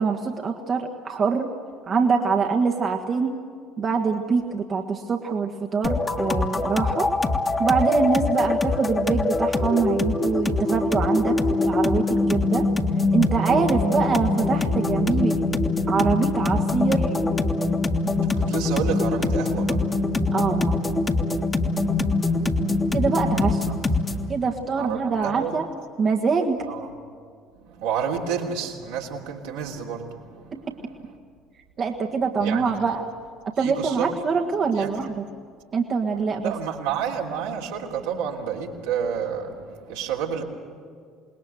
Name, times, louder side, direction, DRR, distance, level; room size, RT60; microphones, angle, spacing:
voice 1, 0.0-1.5 1.9-3.4 3.8-7.1 7.6-11.4 11.6-12.7 13.1-15.3 15.9-17.1 20.3-20.9 22.9-23.7 24.3-25.6 26.0-26.6 30.5-30.8 31.8-33.0 33.6-35.2 35.7-36.5, right 5 dB, 40° right, 2 dB, 1.7 m, -24 dB
sound 1, 5.8-24.3, left 3 dB, 25° left, 2.0 m, -23 dB
voice 2, 18.1-20.7 21.8-23.0 24.7-25.5 26.7-26.9 27.6-30.7 32.4-32.8 33.6-34.1 34.7-34.9 36.4-40.4, right 7 dB, 70° right, -1 dB, 3.1 m, -30 dB
27.5 x 20.5 x 7.8 m, 2.2 s
figure-of-eight pair, 55°, 0 cm